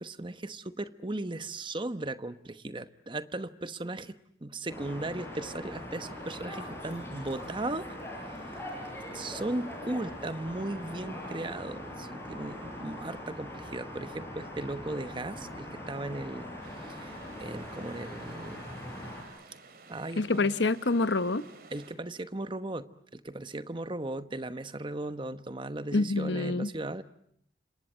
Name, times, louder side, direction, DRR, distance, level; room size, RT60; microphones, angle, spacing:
voice 1, 0.0-7.9 8.2-8.6 9.1-18.6 19.9-20.5 21.7-27.0, right 2 dB, 25° right, 1.1 m, -37 dB
sound 1, 4.7-19.2, left 1 dB, 15° left, 7.3 m, -41 dB
sound 2, 16.6-22.0, right 3 dB, 55° right, 3.0 m, -53 dB
voice 2, 20.2-21.4 25.9-26.7, left 3 dB, 80° left, 1.1 m, -27 dB
29.5 x 26.0 x 7.6 m
head